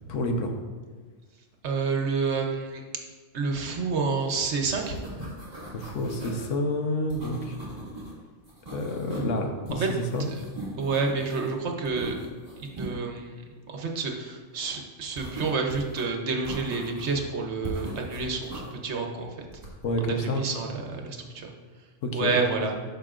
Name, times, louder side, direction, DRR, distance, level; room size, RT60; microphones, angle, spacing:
voice 1, 0.1-0.5 5.7-7.6 8.7-10.3 19.8-20.5 22.0-22.3, left 1 dB, 90° left, 4 dB, 1.2 m, -29 dB
voice 2, 1.6-2.8 3.3-5.0 9.7-9.9 10.7-12.2 12.6-19.3 20.0-21.5 22.1-22.7, right 4 dB, 65° right, 2 dB, 1.2 m, -29 dB
sound 1, 4.3-4.5 4.7-6.5 7.1-8.1 8.4-9.4 9.7-11.5 11.9-12.9 15.2-16.0 16.5-17.2 17.6-18.7 19.5-19.9, right 1 dB, 30° right, 2.2 m, -39 dB
12.0 x 5.4 x 2.5 m, 1.5 s
omnidirectional pair, 1.3 m